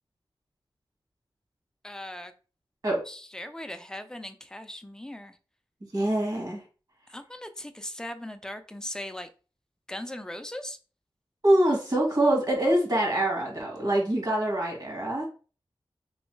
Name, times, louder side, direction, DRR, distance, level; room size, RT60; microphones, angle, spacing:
voice 1, 1.8-2.3 3.1-5.3 7.1-9.3 9.9-10.8, left 1 dB, 5° left, 8 dB, 0.4 m, -39 dB
voice 2, 5.9-6.6 11.4-15.3, right 1 dB, 45° right, -1 dB, 1.6 m, -24 dB
3.1 x 3.1 x 3.1 m, 0.36 s
wide cardioid pair, 95°, 9 cm